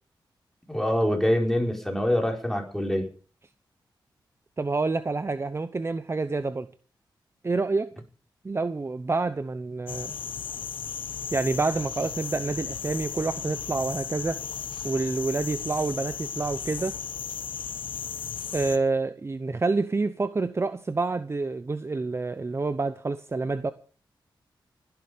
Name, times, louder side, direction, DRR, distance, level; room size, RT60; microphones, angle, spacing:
voice 1, 0.7-3.1, equal, 5° left, 5.0 m, -25 dB
voice 2, 4.6-6.7 7.4-7.9 8.4-10.1 11.3-14.4 14.8-17.0 18.5-23.7, right 3 dB, 30° right, 0.8 m, -28 dB
sound 1, 9.9-18.8, left 7 dB, 90° left, 1.3 m, -35 dB
20.0 x 10.5 x 5.1 m
cardioid pair, 75°, 8 cm